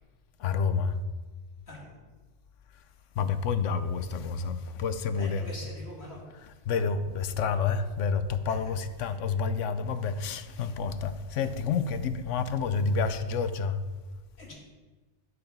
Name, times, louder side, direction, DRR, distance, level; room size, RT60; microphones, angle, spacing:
voice 1, 0.4-1.0 3.2-5.5 6.6-13.8, left 5 dB, 80° left, 12 dB, 1.0 m, -29 dB
voice 2, 1.7-2.0 5.1-6.2 6.7-6.8 8.4-8.6 9.0-9.1 14.4-14.5, left 1 dB, 60° left, -2 dB, 2.8 m, -44 dB
8.6 x 7.0 x 5.4 m, 1.3 s
omnidirectional pair, 1.2 m